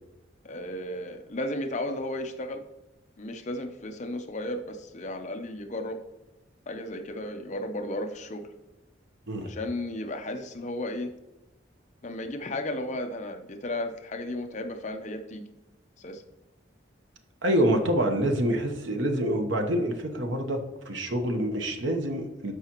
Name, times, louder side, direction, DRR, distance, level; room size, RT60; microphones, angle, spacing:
voice 1, 0.4-2.6 3.2-6.0 6.7-8.5 9.5-11.1 12.0-15.4 16.0-16.2, left 1 dB, 40° left, 6 dB, 0.6 m, -34 dB
voice 2, 17.4-22.5, equal, 75° right, 5 dB, 1.0 m, -26 dB
13.5 x 4.9 x 3.0 m, 0.96 s
head